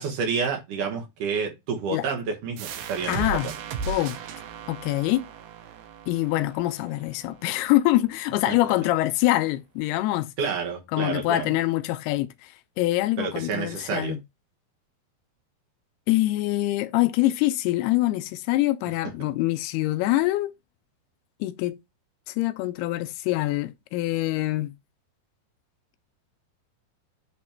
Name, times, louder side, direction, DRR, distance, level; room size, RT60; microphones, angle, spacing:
voice 1, 0.0-3.5 8.5-8.6 10.4-11.5 13.2-14.2 19.0-19.3, right 5 dB, 65° right, 2.5 m, -29 dB
sound 1, 2.6-8.0, right 5 dB, 80° right, 2.9 m, -36 dB
voice 2, 3.1-3.5 3.9-4.2 4.7-5.2 6.1-10.3 10.9-14.2 16.1-20.5 21.4-21.8 22.3-24.7, left 16 dB, 85° left, 2.5 m, -25 dB
8.7 x 3.1 x 4.3 m
omnidirectional pair, 4.6 m